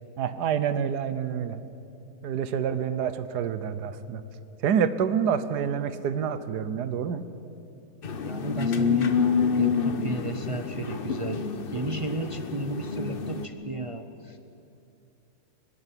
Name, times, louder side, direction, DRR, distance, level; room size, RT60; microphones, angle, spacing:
voice 1, 0.2-1.6 2.2-4.2 4.6-7.2, right 7 dB, 85° right, 13 dB, 1.5 m, -27 dB
sound 1, 8.0-13.5, left 6 dB, 45° left, 0.9 m, -27 dB
voice 2, 8.2-9.2 9.5-11.4 11.7-14.4, right 2 dB, 35° right, 7 dB, 0.5 m, -33 dB
23.0 x 12.0 x 9.9 m, 2.7 s
omnidirectional pair, 1.7 m